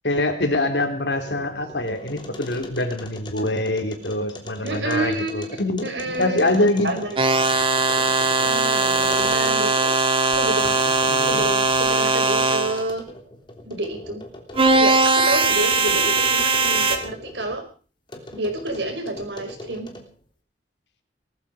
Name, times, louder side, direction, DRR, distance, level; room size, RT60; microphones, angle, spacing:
voice 1, 0.0-5.9 6.2-7.1 11.1-11.4, left 2 dB, 75° left, 5 dB, 3.6 m, -24 dB
sound 1, 0.9-9.9 10.3-17.6 18.1-20.2, left 1 dB, 30° left, 3.3 m, -40 dB
voice 2, 4.6-5.5 5.8-7.2 8.4-9.9 10.3-13.0 13.6-14.2 14.8-17.6 18.3-19.9, right 2 dB, 85° right, 5 dB, 5.1 m, -29 dB
sound 2, 7.1-12.8 14.5-17.0, right 3 dB, 30° right, 2.3 m, -20 dB
19.5 x 14.5 x 5.1 m, 0.39 s
head